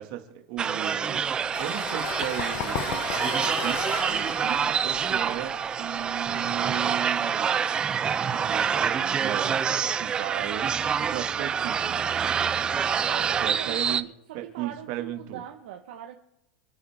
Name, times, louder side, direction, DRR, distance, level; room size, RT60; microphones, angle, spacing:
voice 1, 0.0-7.6 8.3-9.6 10.0-10.7 11.0-12.0 13.1-14.0 14.3-15.4, right 12 dB, 45° right, 4 dB, 2.2 m, -36 dB
sound 1, 0.6-14.0, right 7 dB, 15° right, 0.4 m, -27 dB
sound 2, 1.3-6.8, left 9 dB, 40° left, 1.1 m, -35 dB
voice 2, 4.6-5.2 10.3-11.4 13.0-16.1, right 10 dB, 60° right, 1 dB, 1.4 m, -43 dB
28.0 x 9.5 x 3.7 m, 0.89 s
supercardioid pair, 165°, 6 cm